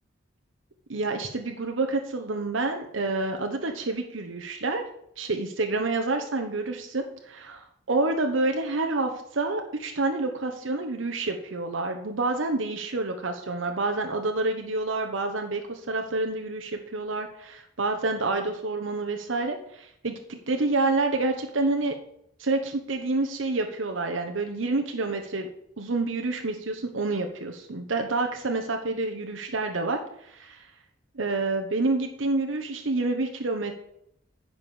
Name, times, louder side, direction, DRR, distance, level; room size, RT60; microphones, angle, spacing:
voice 1, 0.9-4.8 5.2-21.9 22.4-25.5 25.8-30.7 31.1-33.7, right 3 dB, 85° right, 4 dB, 1.1 m, -28 dB
10.0 x 5.1 x 7.2 m, 0.74 s
head